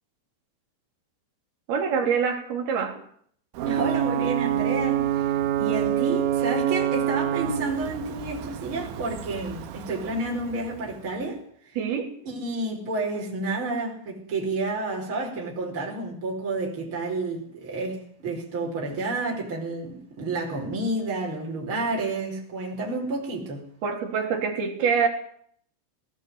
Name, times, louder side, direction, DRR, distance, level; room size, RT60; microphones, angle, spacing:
voice 1, 1.7-3.0 11.8-12.1 23.8-25.1, right 6 dB, 60° right, 5.3 m, -25 dB
Ocean / Boat Water vehicle / Alarm, 3.6-11.1, right 12 dB, 85° right, 3.9 m, -27 dB
voice 2, 3.7-11.8 12.3-23.7, right 2 dB, 30° right, 5.2 m, -30 dB
19.0 x 19.0 x 9.6 m
omnidirectional pair, 5.2 m